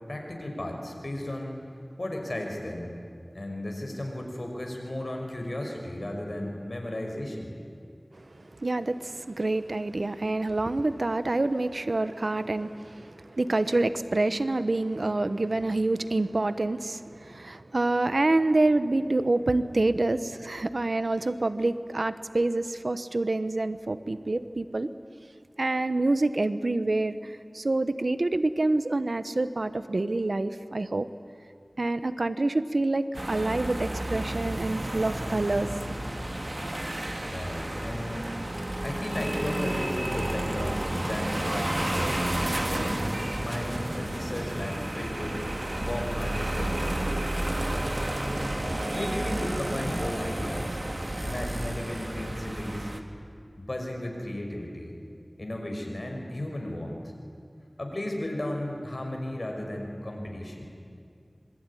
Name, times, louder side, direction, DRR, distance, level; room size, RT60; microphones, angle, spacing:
voice 1, 0.1-1.6 2.0-3.0 3.3-7.5 37.3-38.3 38.8-42.3 42.7-43.1 43.4-47.1 48.9-50.8 51.2-52.9 53.6-54.9 55.4-57.1 57.8-60.7, left 1 dB, 65° left, 2 dB, 5.6 m, -35 dB
voice 2, 8.6-24.9 25.6-31.1 31.8-35.7, right 2 dB, 80° right, 12 dB, 1.1 m, -27 dB
sound 1, 33.1-53.0, right 1 dB, 45° right, 2.3 m, -31 dB
26.5 x 22.5 x 10.0 m, 2.3 s
wide cardioid pair, 50°, 0 cm